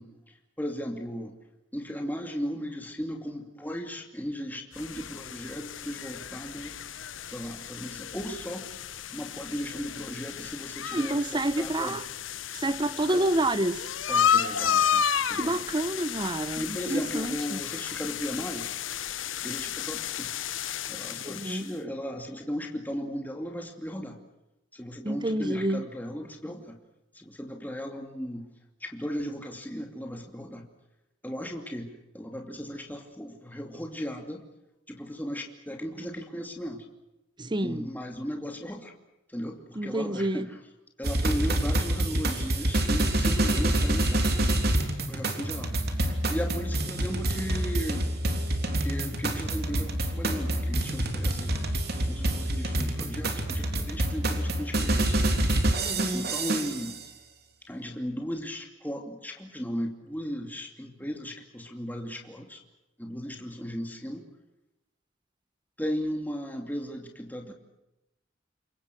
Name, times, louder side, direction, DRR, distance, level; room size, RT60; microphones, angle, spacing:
voice 1, 0.0-1.4 1.7-6.8 7.3-12.0 13.1-13.3 14.1-15.6 16.6-18.7 19.4-20.3 20.9-24.2 24.7-26.8 27.1-28.5 28.8-30.7 31.2-34.4 34.9-36.9 37.6-38.9 39.3-40.6 41.0-44.6 45.1-48.1 48.8-51.6 52.1-55.2 56.1-57.0 57.7-62.6 63.0-64.3 65.8-67.5, equal, 10° left, 2.7 m, -36 dB
sound 1, 4.7-21.7, left 8 dB, 85° left, 1.1 m, -32 dB
voice 2, 10.9-12.0 12.5-13.8 15.3-17.6 21.2-21.7 25.0-25.8 37.4-37.9 39.8-40.5 55.8-56.3, right 1 dB, 25° right, 1.0 m, -28 dB
sound 2, 41.0-57.0, right 1 dB, 55° right, 3.5 m, -27 dB
29.0 x 23.5 x 6.3 m
head